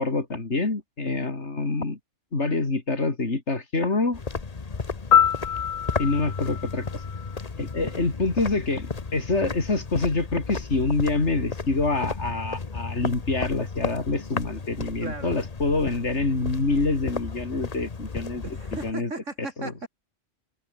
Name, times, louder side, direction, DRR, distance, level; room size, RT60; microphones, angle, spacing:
voice 1, 0.0-2.0 2.3-4.2 6.0-6.9 7.6-18.4 18.8-19.1 19.6-19.7, left 3 dB, 55° left, 3.4 m, -26 dB
sound 1, 4.1-18.9, left 4 dB, 30° left, 1.2 m, -34 dB
Piano, 5.1-8.0 16.2-16.4, left 9 dB, 80° left, 1.4 m, -25 dB
voice 2, 15.0-15.4 18.4-19.9, right 3 dB, 65° right, 4.0 m, -36 dB
omnidirectional pair, 1.4 m